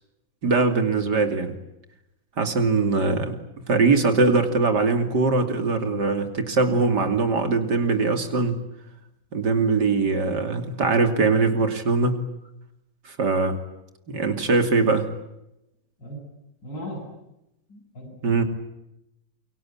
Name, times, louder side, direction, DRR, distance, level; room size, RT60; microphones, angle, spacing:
voice 1, 0.4-1.5 2.4-3.3 3.7-8.6 9.3-12.2 13.0-13.6 14.1-15.1 18.2-18.4, right 3 dB, 65° right, 7 dB, 3.4 m, -21 dB
voice 2, 16.6-17.0 17.7-18.1, equal, 80° left, -4 dB, 8.9 m, -36 dB
28.0 x 24.0 x 8.7 m, 0.87 s
omnidirectional pair, 1.9 m